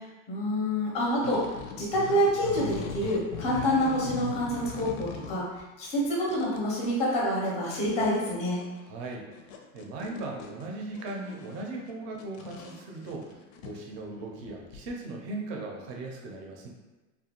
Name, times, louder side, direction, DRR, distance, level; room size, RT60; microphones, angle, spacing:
voice 1, 0.3-1.4 1.8-5.5 5.8-8.6, equal, 15° left, -4 dB, 0.5 m, -27 dB
sound 1, 1.0-5.6 6.0-6.9 7.1-7.2 7.4-14.9, left 6 dB, 80° left, 0.5 m, -41 dB
voice 2, 8.8-9.3 9.7-13.3 13.6-16.7, right 2 dB, 45° right, 0 dB, 0.5 m, -38 dB
2.5 x 2.2 x 2.8 m, 1.2 s
supercardioid pair, 155°, 39 cm